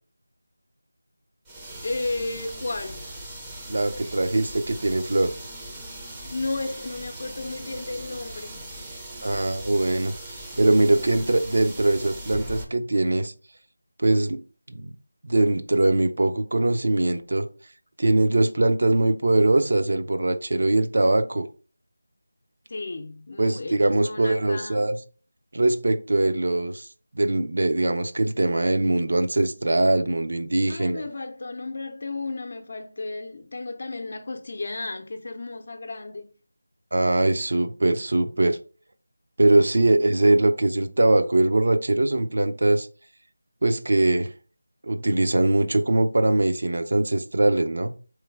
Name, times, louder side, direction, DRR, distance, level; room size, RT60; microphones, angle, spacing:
sound 1, 1.5-12.6, right 1 dB, 10° right, 0.6 m, -39 dB
voice 1, 1.8-3.1 6.3-8.8 22.7-24.8 30.7-36.3 39.7-40.0, left 2 dB, 45° left, 0.6 m, -33 dB
voice 2, 3.7-5.3 9.2-13.3 14.0-14.4 14.7-15.0 15.2-17.5 18.0-21.5 23.4-25.0 25.5-26.9 27.1-31.0 36.9-38.6 39.4-42.9 43.6-44.3 44.8-47.9, right 2 dB, 55° right, 0.6 m, -22 dB
3.8 x 3.2 x 3.4 m
figure-of-eight pair, 165°, 0 cm